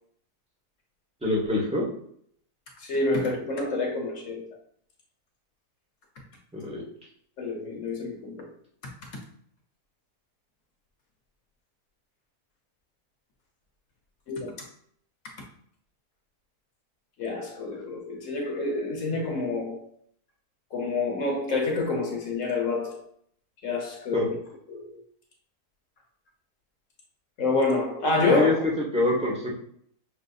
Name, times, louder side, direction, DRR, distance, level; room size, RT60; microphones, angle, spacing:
voice 1, 1.2-1.9 6.5-6.8 24.1-24.3 28.3-29.5, left 1 dB, 5° right, 0.5 m, -25 dB
voice 2, 2.8-4.5 7.4-8.5 8.8-8.9 14.3-14.5 17.2-20.0 20.7-23.0 23.6-24.4 24.7-24.9 27.4-28.6, left 3 dB, 65° left, 0.9 m, -27 dB
6.0 x 2.5 x 2.3 m
omnidirectional pair, 1.7 m